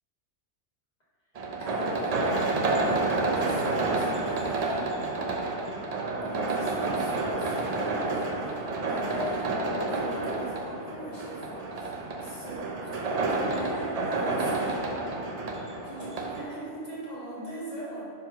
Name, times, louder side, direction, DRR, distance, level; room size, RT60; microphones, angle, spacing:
sound 1, 1.4-16.4, right 2 dB, 50° right, 0.5 m, -29 dB
voice 1, 1.6-5.5 6.2-12.7 13.0-14.9 15.8-18.1, equal, 40° left, -7 dB, 1.6 m, -41 dB
4.5 x 4.0 x 5.4 m, 2.7 s
omnidirectional pair, 1.2 m